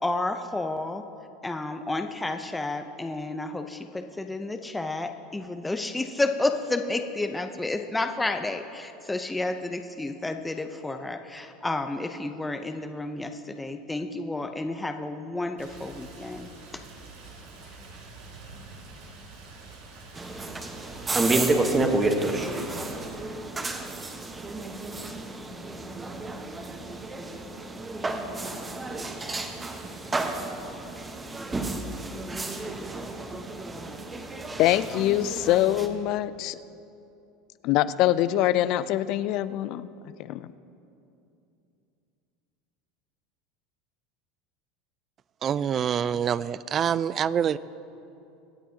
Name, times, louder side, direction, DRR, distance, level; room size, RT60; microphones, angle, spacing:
voice 1, 0.0-1.0 1.4-16.5, left 2 dB, 10° left, 6 dB, 0.6 m, -31 dB
Rain, 15.6-23.1, right 3 dB, 75° right, 2.8 m, -46 dB
sound 1, 20.2-35.9, right 2 dB, 20° right, 1.2 m, -31 dB
voice 2, 34.6-36.6 37.6-39.9 40.2-40.5, left 13 dB, 60° left, 15 dB, 0.4 m, -24 dB
voice 3, 45.4-47.6, right 8 dB, 40° right, 18 dB, 0.3 m, -26 dB
24.5 x 9.0 x 2.9 m, 2.7 s
hypercardioid pair, 90°, 0 cm